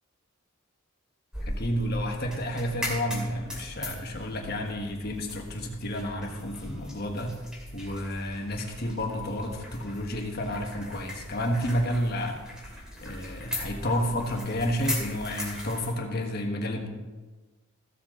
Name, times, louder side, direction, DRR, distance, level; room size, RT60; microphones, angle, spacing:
sound 1, 1.3-15.9, left 1 dB, 5° right, 2.4 m, -39 dB
voice 1, 1.4-7.4 7.7-12.4 13.0-16.9, equal, 50° left, 2 dB, 1.5 m, -30 dB
15.0 x 7.5 x 3.8 m, 1.3 s
head